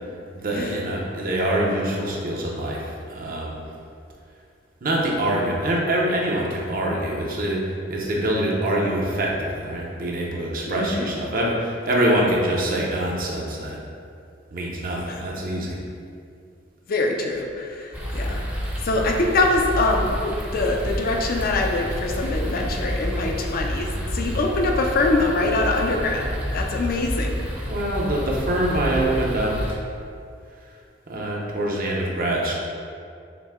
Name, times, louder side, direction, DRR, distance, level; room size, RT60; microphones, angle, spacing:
voice 1, 0.3-3.6 4.8-7.6 7.9-13.8 14.5-15.8 27.7-29.6 31.1-32.6, right 1 dB, 50° right, -3 dB, 0.7 m, -24 dB
voice 2, 10.7-11.1 15.1-15.2 16.9-18.4 18.8-27.3, left 2 dB, 50° left, 1 dB, 0.4 m, -24 dB
sound 1, 17.9-29.7, equal, 10° right, 0.6 m, -29 dB
5.7 x 2.1 x 3.5 m, 2.4 s
head